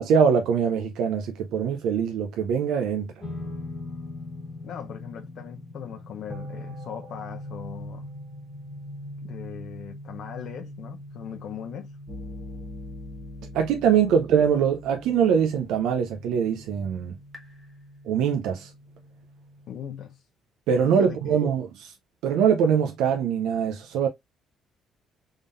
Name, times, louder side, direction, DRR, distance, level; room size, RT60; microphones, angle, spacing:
voice 1, 0.0-3.1 13.5-17.1 18.1-18.7 20.7-21.9 22.2-24.1, right 7 dB, 80° right, 0.5 m, -23 dB
sound 1, 3.2-15.7, left 3 dB, 30° left, 1.4 m, -44 dB
voice 2, 4.6-8.1 9.2-12.0 14.1-14.2 19.7-20.3 20.8-21.4, left 8 dB, 50° left, 0.7 m, -39 dB
sound 2, 4.7-19.8, equal, 5° right, 1.1 m, -42 dB
3.6 x 3.6 x 2.5 m
cardioid pair, 175°, 0 cm